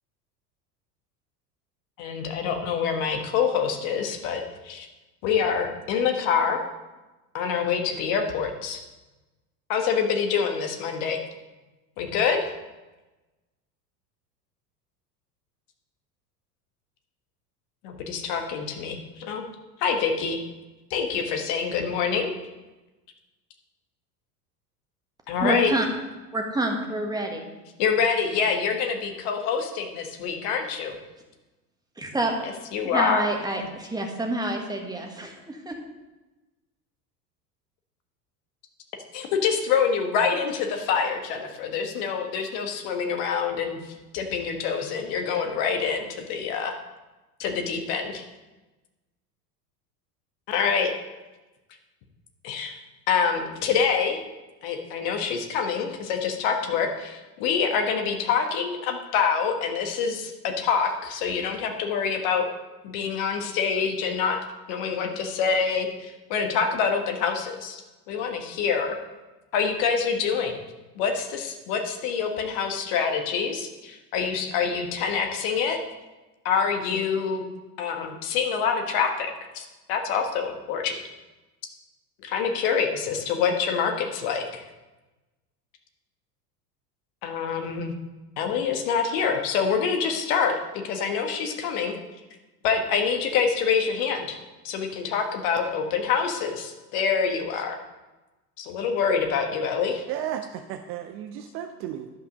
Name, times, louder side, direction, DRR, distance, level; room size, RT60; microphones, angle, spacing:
voice 1, 2.0-4.9 5.2-6.6 7.3-8.8 9.7-11.2 12.0-12.5 17.8-19.4 19.8-20.4 20.9-22.3 25.3-25.7 27.8-31.0 32.7-33.3 39.1-46.7 47.4-48.2 50.5-50.9 52.4-52.8 53.1-54.2 54.6-62.5 62.8-64.4 64.7-67.8 68.1-68.9 69.5-70.6 70.9-75.8 76.4-77.4 77.8-81.0 82.2-84.6 87.2-87.9 88.4-91.9 92.6-94.4 94.6-97.8 98.6-100.0, left 6 dB, 50° left, 4 dB, 1.5 m, -26 dB
voice 2, 25.4-25.9 26.3-27.5 32.0-32.3 32.9-35.7, right 2 dB, 10° right, 2 dB, 1.4 m, -28 dB
voice 3, 100.1-102.1, right 10 dB, 30° right, 7 dB, 0.4 m, -34 dB
11.5 x 5.5 x 5.1 m, 1.1 s
figure-of-eight pair, 75°, 49 cm